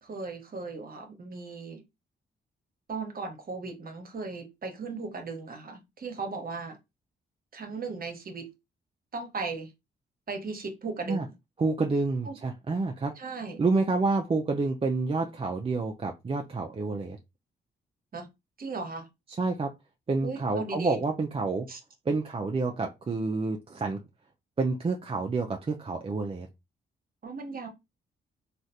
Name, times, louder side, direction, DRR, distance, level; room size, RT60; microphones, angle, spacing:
voice 1, 0.0-1.8 2.9-6.8 7.5-8.5 9.1-9.7 10.3-11.3 12.2-12.4 13.2-13.6 18.1-18.3 18.6-19.1 20.2-21.0 21.7-21.8 27.2-27.7, right 4 dB, 45° right, 1.0 m, -37 dB
voice 2, 11.6-13.1 13.6-17.2 19.4-19.7 20.1-21.7 22.1-24.0 24.6-26.5, right 3 dB, 30° right, 0.5 m, -28 dB
3.1 x 2.4 x 2.6 m
supercardioid pair, 60°, 20 cm